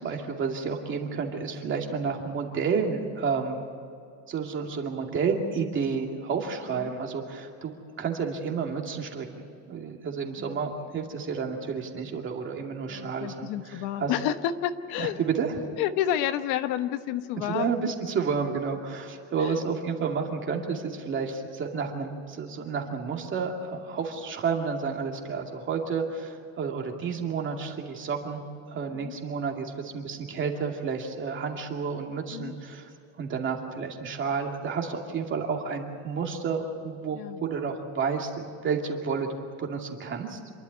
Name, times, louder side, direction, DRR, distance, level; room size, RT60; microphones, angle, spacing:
voice 1, 0.0-3.7 4.3-7.7 8.0-14.1 15.0-15.5 17.4-28.4 28.7-32.9 33.2-40.4, right 5 dB, 30° right, 2 dB, 2.5 m, -31 dB
voice 2, 12.9-15.2 15.8-17.8 19.4-19.6 28.9-29.2 32.3-32.6 37.1-37.4, left 11 dB, 85° left, 10 dB, 1.2 m, -30 dB
27.5 x 12.0 x 9.6 m, 2.4 s
cardioid pair, 170°, 37 cm